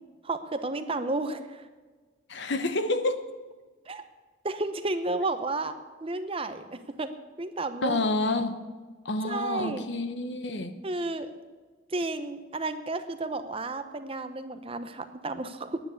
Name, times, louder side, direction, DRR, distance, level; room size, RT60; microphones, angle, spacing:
voice 1, 0.2-1.6 3.9-4.0 4.4-5.8 6.0-7.1 7.4-8.0 9.2-9.8 10.8-11.3 11.9-15.8, right 2 dB, 30° right, 9 dB, 0.8 m, -32 dB
voice 2, 2.3-3.3 7.8-8.6 9.0-10.7, left 2 dB, 65° left, 9 dB, 1.0 m, -28 dB
10.5 x 9.3 x 8.4 m, 1.4 s
head